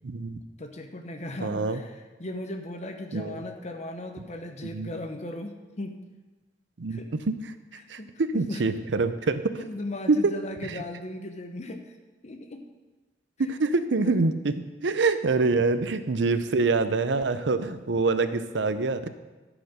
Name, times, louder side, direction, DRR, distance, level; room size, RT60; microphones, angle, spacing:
voice 1, 0.0-0.4 1.4-1.8 3.1-3.4 4.7-4.9 6.8-7.0 7.3-7.4 7.9-9.4 10.1-10.3 10.6-10.7 13.4-19.1, right 3 dB, 85° right, 11 dB, 0.7 m, -25 dB
voice 2, 0.6-6.0 6.9-7.1 7.7-8.6 9.6-12.0 12.2-12.6 14.0-14.1 15.5-15.6 17.5-17.8, left 1 dB, 40° left, 5 dB, 0.9 m, -38 dB
13.0 x 5.1 x 6.5 m, 1.2 s
head